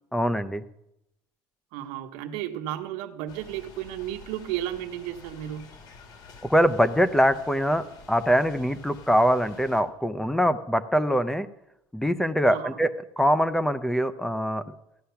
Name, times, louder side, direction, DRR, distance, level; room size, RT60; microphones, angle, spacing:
voice 1, 0.1-0.6 6.5-11.5 11.9-12.9 13.2-14.6, equal, 5° left, 13 dB, 0.6 m, -23 dB
voice 2, 1.7-5.7 12.5-12.7, right 12 dB, 85° right, 4 dB, 1.3 m, -33 dB
sound 1, 3.3-9.8, left 4 dB, 50° left, 2.6 m, -49 dB
14.5 x 10.0 x 5.8 m, 0.84 s
cardioid pair, 135°, 8 cm